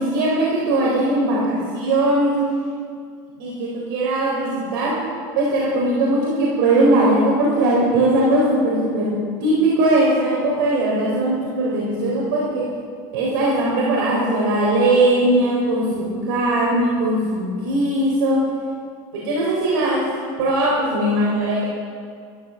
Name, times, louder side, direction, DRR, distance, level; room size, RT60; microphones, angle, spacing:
voice 1, 0.0-2.4 3.4-5.0 5.4-12.8 13.1-18.5 19.1-20.1 20.4-21.6, right 1 dB, 90° right, -4 dB, 4.1 m, -19 dB
14.0 x 13.0 x 7.3 m, 2.1 s
cardioid pair, 160°, 11 cm